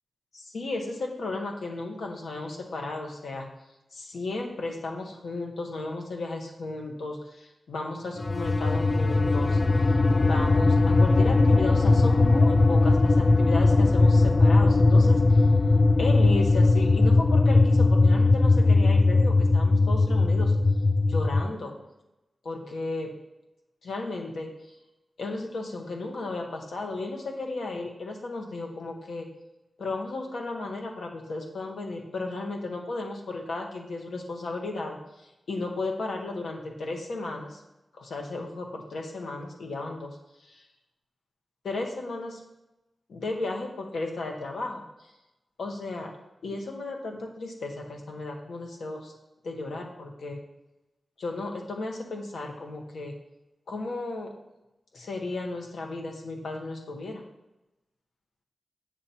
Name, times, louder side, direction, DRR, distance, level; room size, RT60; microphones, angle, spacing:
voice 1, 0.3-3.5 3.9-15.4 16.0-20.5 21.1-21.8 22.4-23.1 23.8-24.5 25.2-29.3 29.8-37.6 37.9-40.2 40.4-40.6 41.6-42.4 43.1-44.8 45.6-46.1 46.4-49.1 49.4-50.4 51.2-53.1 53.7-54.3 54.9-57.2, left 2 dB, 85° left, 1 dB, 1.4 m, -34 dB
sound 1, 8.2-21.5, left 3 dB, 35° left, 0.3 m, -20 dB
7.5 x 6.8 x 4.4 m, 0.96 s
wide cardioid pair, 75°, 0 cm